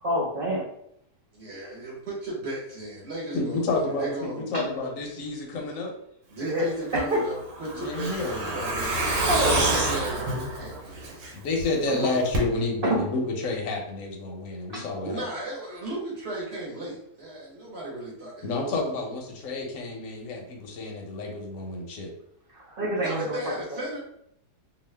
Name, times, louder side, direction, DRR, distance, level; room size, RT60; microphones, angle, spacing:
voice 1, 0.0-0.6 4.5-4.7 6.4-6.6 6.9-7.2 9.3-9.8 11.8-12.0 12.8-13.1 14.7-14.8 22.5-23.3 23.7-23.8, right 1 dB, 70° right, -4 dB, 0.5 m, -27 dB
voice 2, 1.3-4.5 6.3-11.2 11.9-12.1 15.0-18.7 22.9-24.0, right 1 dB, 45° right, -5 dB, 1.2 m, -36 dB
voice 3, 3.3-5.9 7.8-8.7 11.3-15.2 18.4-22.1, left 2 dB, 65° left, 0 dB, 1.0 m, -30 dB
Truck, 6.9-11.6 11.9-12.0 12.3-12.4, right 2 dB, 85° right, 1.4 m, -28 dB
2.8 x 2.3 x 3.2 m, 0.73 s
omnidirectional pair, 1.7 m